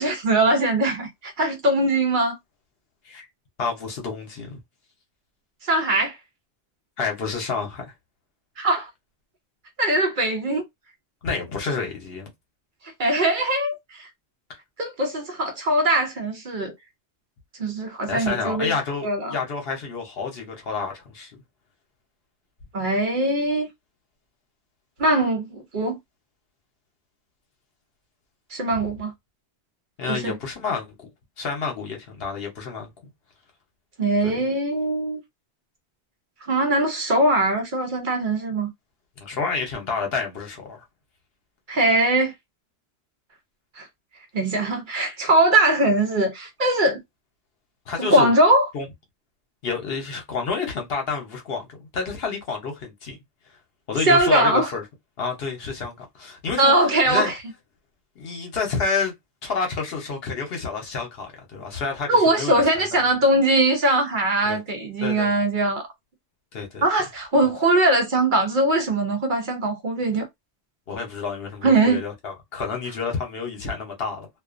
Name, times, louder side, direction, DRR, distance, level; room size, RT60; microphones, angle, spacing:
voice 1, 0.0-2.4 5.6-6.2 8.6-8.9 9.8-10.6 13.0-14.1 14.8-16.7 17.6-18.7 19.0-19.4 22.7-23.7 25.0-26.0 28.5-29.1 30.1-30.3 34.0-35.2 36.5-38.7 41.7-42.3 43.8-43.9 44.3-47.0 48.0-48.7 54.1-54.7 56.6-57.4 62.1-65.9 66.8-70.3 71.6-72.0, right 1 dB, 55° right, 0.7 m, -21 dB
voice 2, 3.6-4.6 7.0-7.9 11.2-12.3 14.5-14.6 18.1-21.3 28.7-28.8 30.0-30.9 31.4-32.9 34.2-34.4 39.2-40.8 47.9-48.3 48.7-48.9 49.6-53.2 53.9-54.8 55.2-57.3 58.2-59.1 59.4-62.9 64.4-64.6 65.0-65.3 66.5-66.8 70.9-74.3, left 5 dB, 65° left, 1.0 m, -29 dB
2.4 x 2.3 x 2.4 m
omnidirectional pair, 1.1 m